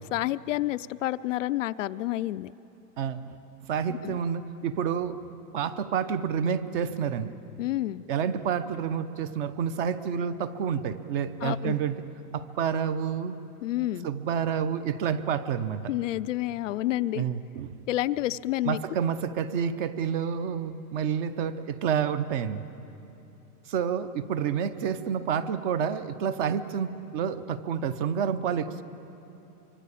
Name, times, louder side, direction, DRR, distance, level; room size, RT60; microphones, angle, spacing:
voice 1, 0.1-2.5 4.0-4.2 7.6-8.0 11.4-11.7 13.6-14.1 15.9-17.3 17.9-18.8, left 15 dB, 55° left, 12 dB, 0.5 m, -29 dB
voice 2, 3.0-3.3 3.6-5.2 5.5-7.3 8.1-12.0 12.3-13.3 14.0-15.9 17.1-17.7 18.6-22.6 23.7-28.8, right 7 dB, 35° right, 12 dB, 0.8 m, -29 dB
25.0 x 24.0 x 8.5 m, 2.9 s
supercardioid pair, 160°, 47 cm